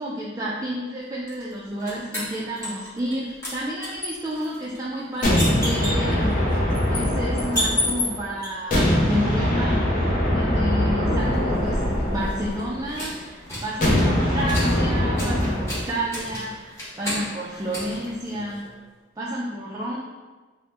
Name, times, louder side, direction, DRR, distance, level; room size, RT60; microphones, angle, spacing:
voice 1, 0.0-6.2 6.5-18.7 19.2-20.0, equal, 20° right, -6 dB, 0.3 m, -31 dB
sound 1, 1.3-3.2 3.4-8.5 11.3-18.8, left 1 dB, 15° left, 0.9 m, -32 dB
sound 2, 5.2-8.2 8.7-13.0 13.8-15.9, left 1 dB, 50° left, 0.7 m, -22 dB
2.8 x 2.1 x 3.2 m, 1.3 s
head